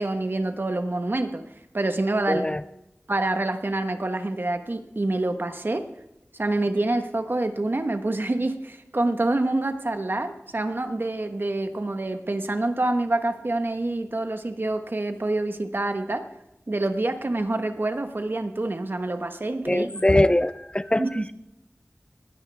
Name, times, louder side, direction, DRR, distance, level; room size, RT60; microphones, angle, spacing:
voice 1, 0.0-1.4 1.7-2.5 3.1-5.9 6.3-16.3 16.7-20.0 21.0-21.3, right 2 dB, 50° right, 8 dB, 1.2 m, -27 dB
voice 2, 2.3-2.6 19.7-21.0, left 1 dB, 25° left, 14 dB, 0.5 m, -21 dB
20.0 x 16.5 x 3.5 m, 0.91 s
wide cardioid pair, 60°, 4 cm